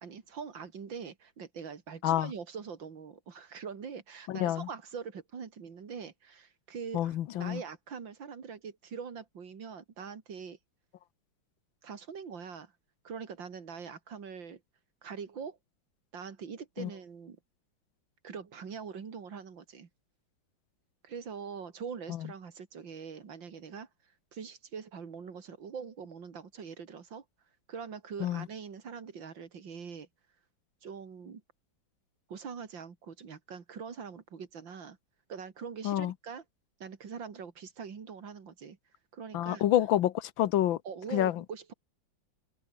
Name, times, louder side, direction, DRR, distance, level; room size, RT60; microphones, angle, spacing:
voice 1, 0.0-10.6 11.8-12.7 13.0-14.6 15.0-15.6 16.1-17.4 18.2-19.9 21.0-23.9 24.3-27.2 27.7-30.1 30.8-31.4 32.3-35.0 35.3-36.4 36.8-38.8 39.1-39.7 40.8-41.7, right 6 dB, 75° right, 3.1 m, -43 dB
voice 2, 4.3-4.7 6.9-7.6 16.8-16.9 28.2-28.5 35.8-36.1 39.3-40.8 41.1-41.4, left 12 dB, 90° left, 1.7 m, -28 dB
omnidirectional pair, 2.1 m